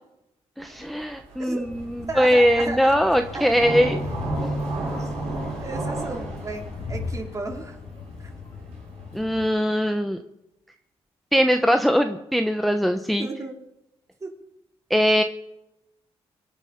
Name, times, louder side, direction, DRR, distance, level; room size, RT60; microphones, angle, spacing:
voice 1, 0.6-4.0 9.1-10.2 11.3-13.3 14.9-15.2, equal, ahead, 6 dB, 0.8 m, -21 dB
sound 1, 0.6-9.5, right 2 dB, 85° right, 7.2 m, -33 dB
Train, 1.7-9.5, left 4 dB, 65° left, 2.4 m, -38 dB
voice 2, 2.1-3.5 5.0-5.1 5.6-7.8 8.2-8.3 13.2-13.6 14.2-14.3, right 2 dB, 30° right, 2 dB, 3.1 m, -34 dB
24.5 x 8.9 x 5.8 m, 0.90 s
cardioid pair, 80°, 11 cm